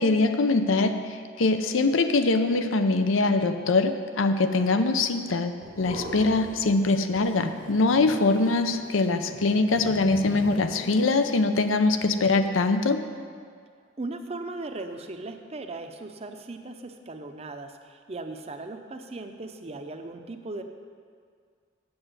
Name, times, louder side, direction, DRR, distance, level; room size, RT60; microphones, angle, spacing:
voice 1, 0.0-13.0, left 3 dB, 80° left, 8 dB, 0.6 m, -23 dB
sound 1, 5.6-6.8 7.1-11.4, equal, 45° left, 1.7 m, -40 dB
voice 2, 14.0-20.6, right 2 dB, 30° right, 6 dB, 0.6 m, -38 dB
7.9 x 7.1 x 8.0 m, 2.1 s
head